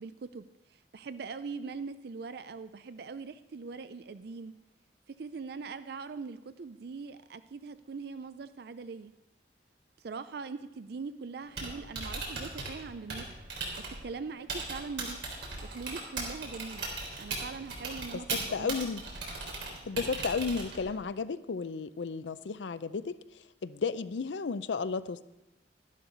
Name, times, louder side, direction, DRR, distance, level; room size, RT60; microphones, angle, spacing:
voice 1, 0.0-4.5 5.2-9.1 10.0-13.4 14.0-15.3 15.6-16.9 17.2-18.7, right 4 dB, 60° right, 13 dB, 0.4 m, -42 dB
Typing, 11.4-21.0, right 3 dB, 80° right, 3.6 m, -39 dB
voice 2, 18.5-19.0 19.9-23.2 23.6-25.2, left 5 dB, 90° left, 15 dB, 0.5 m, -33 dB
12.5 x 11.5 x 3.9 m, 0.97 s
head